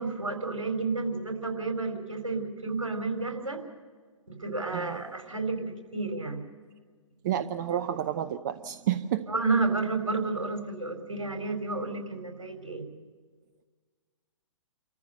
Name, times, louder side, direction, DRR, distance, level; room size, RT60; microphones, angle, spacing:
voice 1, 0.0-3.6 4.3-6.4 9.3-12.9, right 3 dB, 75° right, 3 dB, 4.3 m, -31 dB
voice 2, 7.2-9.3, right 10 dB, 35° right, 12 dB, 0.7 m, -30 dB
28.5 x 14.5 x 6.7 m, 1.5 s
figure-of-eight pair, 120°, 17 cm